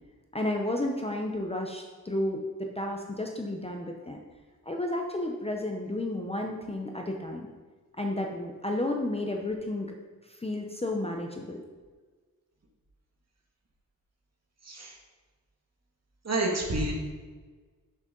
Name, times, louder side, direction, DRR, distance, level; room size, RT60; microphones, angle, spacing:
voice 1, 0.3-4.2 4.7-7.5 8.0-9.9 10.3-11.6, left 1 dB, 15° left, 1 dB, 0.6 m, -32 dB
voice 2, 16.2-16.9, right 2 dB, 45° right, -1 dB, 2.0 m, -28 dB
11.0 x 6.5 x 3.8 m, 1.4 s
wide cardioid pair, 180°, 35 cm